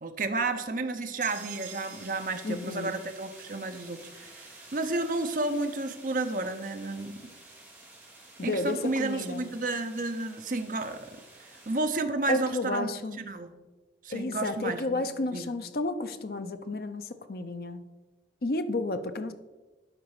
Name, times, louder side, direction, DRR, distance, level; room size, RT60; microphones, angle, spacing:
voice 1, 0.0-7.3 8.4-12.9 13.2-13.5 14.0-15.0 15.3-15.5, right 2 dB, 45° right, 7 dB, 0.6 m, -32 dB
sound 1, 1.2-11.8, right 2 dB, 10° right, 2.4 m, -51 dB
sound 2, 1.2-5.0, right 11 dB, 90° right, 1.1 m, -48 dB
voice 2, 2.4-2.9 8.4-9.5 12.3-13.2 14.1-17.8 18.4-19.3, left 2 dB, 55° left, 9 dB, 0.6 m, -32 dB
12.0 x 4.1 x 4.8 m, 1.2 s
head